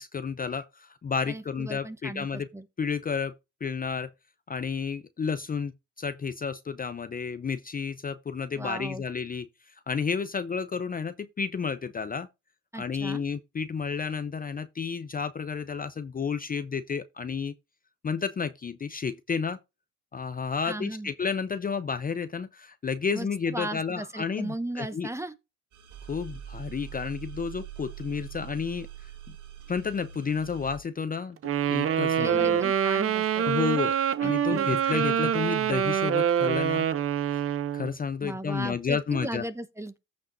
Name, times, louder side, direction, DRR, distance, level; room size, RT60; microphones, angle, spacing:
voice 1, 0.0-2.5 2.8-3.3 3.6-4.1 4.5-5.7 6.0-12.3 12.7-17.5 18.0-19.6 20.1-25.1 26.1-29.1 29.7-32.6 33.4-34.0 34.2-36.9 37.3-37.4 37.7-39.4, left 5 dB, 30° left, 0.6 m, -31 dB
voice 2, 1.3-2.7 8.6-9.0 12.7-13.2 20.6-21.1 23.1-25.3 32.2-33.5 34.2-34.7 38.2-40.0, right 1 dB, 10° right, 1.0 m, -36 dB
sound 1, 25.7-30.8, right 9 dB, 80° right, 1.8 m, -43 dB
Wind instrument woodwind instrument, 31.4-37.9, right 9 dB, 50° right, 0.7 m, -25 dB
14.5 x 5.2 x 2.6 m
cardioid pair, 90°, 30 cm